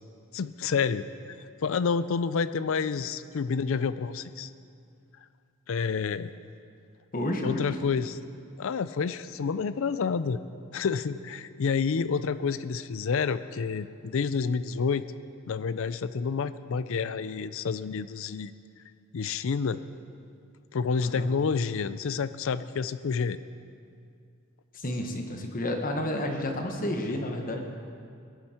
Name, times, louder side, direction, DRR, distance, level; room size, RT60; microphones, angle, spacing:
voice 1, 0.3-4.5 5.7-6.3 7.4-8.2 8.6-10.4 10.7-15.1 15.5-18.5 19.1-19.8 20.7-23.4, left 5 dB, 65° left, 14 dB, 0.4 m, -29 dB
voice 2, 7.1-7.7 21.0-21.3 24.7-27.7, left 1 dB, 40° left, 3 dB, 1.3 m, -31 dB
18.5 x 11.0 x 4.4 m, 2.4 s
head